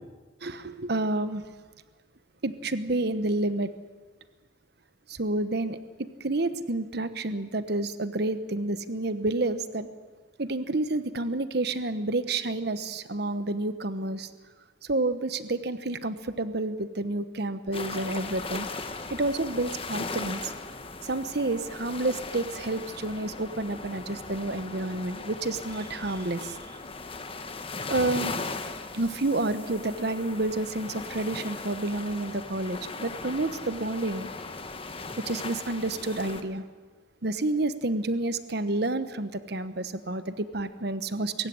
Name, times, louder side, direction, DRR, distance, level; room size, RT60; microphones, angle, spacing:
voice 1, 0.4-1.4 2.4-3.7 5.1-9.9 10.4-14.3 14.8-18.7 19.1-20.4 21.0-26.6 27.9-28.3 28.9-34.3 35.3-36.6 37.2-41.5, right 2 dB, 60° right, 12 dB, 1.1 m, -29 dB
Beach Waves - Close Distance, 17.7-36.4, left 3 dB, 30° left, 1.4 m, -38 dB
23.0 x 15.0 x 9.7 m, 1.4 s
head